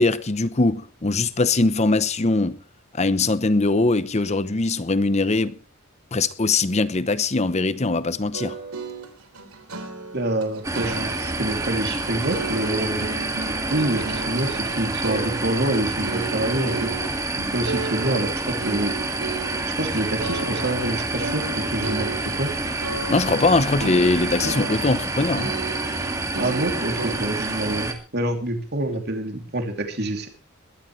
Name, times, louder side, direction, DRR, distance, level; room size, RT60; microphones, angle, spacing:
voice 1, 0.0-2.6 2.9-5.6 6.1-8.6 23.1-25.5, left 3 dB, 30° left, 0.8 m, -21 dB
sound 1, 8.3-19.9 20.2-20.9 21.2-23.5 23.8-25.1 25.4-27.1, right 3 dB, 90° right, 3.2 m, -34 dB
voice 2, 10.1-13.1 13.7-16.9 17.5-18.9 19.8-22.5 26.3-30.3, right 1 dB, 50° right, 2.8 m, -26 dB
sound 2, 10.6-27.9, right 2 dB, 15° right, 2.1 m, -28 dB
21.5 x 13.0 x 3.2 m
head